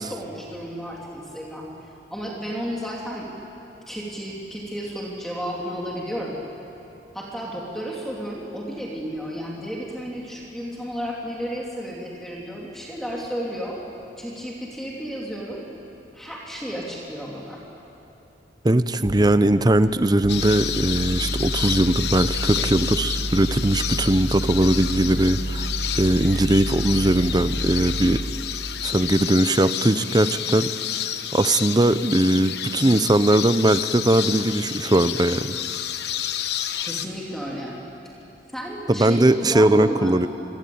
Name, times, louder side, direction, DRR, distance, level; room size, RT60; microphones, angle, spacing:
voice 1, 0.0-1.7 2.1-3.3 3.9-6.4 7.1-13.8 14.2-15.6 16.1-17.6 36.8-37.8 38.5-40.3, equal, ahead, -3 dB, 3.0 m, -32 dB
voice 2, 18.6-25.7 26.0-28.2 28.8-30.7 31.3-35.6 38.9-40.3, right 1 dB, 25° right, 12 dB, 0.7 m, -20 dB
sound 1, 19.0-19.2 20.2-28.2, right 1 dB, 85° left, 4.8 m, -29 dB
sound 2, 20.3-37.1, left 10 dB, 65° left, 1.1 m, -30 dB
27.5 x 23.0 x 8.7 m, 2.9 s
head